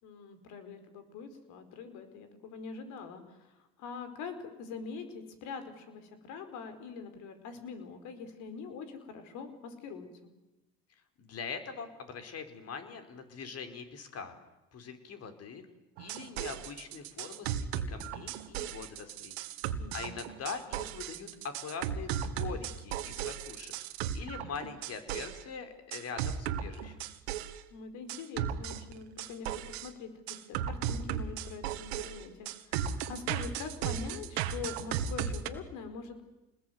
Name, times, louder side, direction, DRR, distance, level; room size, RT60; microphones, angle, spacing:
voice 1, 0.0-10.1 19.8-20.2 27.7-36.2, left 5 dB, 70° left, 10 dB, 5.0 m, -44 dB
voice 2, 11.2-14.3 14.7-15.6 16.0-19.4 19.9-23.7 24.1-27.0, left 5 dB, 50° left, 8 dB, 4.9 m, -42 dB
sound 1, 16.0-25.4 25.9-27.6 28.1-29.9 30.3-35.5, right 9 dB, 85° right, 1.8 m, -36 dB
28.5 x 20.5 x 9.6 m, 1.0 s
hypercardioid pair, 75°, 31 cm